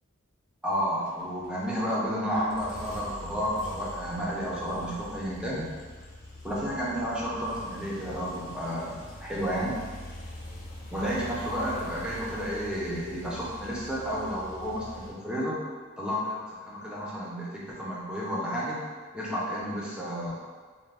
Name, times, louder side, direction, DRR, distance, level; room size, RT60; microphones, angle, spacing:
voice 1, 0.6-5.6 6.4-9.8 10.9-15.6 16.0-18.8 19.1-20.4, equal, 5° right, -7 dB, 0.4 m, -31 dB
sound 1, 1.0-15.1, left 1 dB, 40° left, 0.5 m, -44 dB
2.3 x 2.0 x 3.4 m, 1.5 s
head